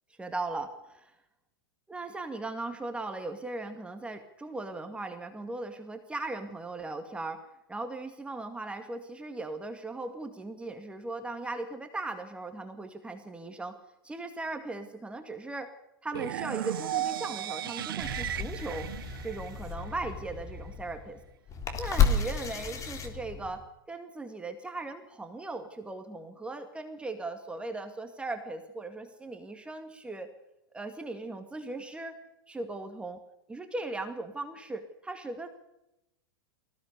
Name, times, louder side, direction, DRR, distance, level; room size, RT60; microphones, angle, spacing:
voice 1, 0.2-1.1 1.9-7.4 7.7-13.8 14.0-15.7 16.0-18.9 19.2-21.2 21.8-30.3 30.7-32.2 32.5-33.2 33.5-35.5, right 2 dB, 10° right, 7 dB, 2.1 m, -38 dB
sound 1, 16.1-20.1, right 11 dB, 75° right, 0.8 m, -35 dB
sound 2, 18.0-23.7, left 6 dB, 25° left, 3.4 m, -32 dB
19.5 x 16.0 x 8.4 m, 0.89 s
hypercardioid pair, 115°, 12 cm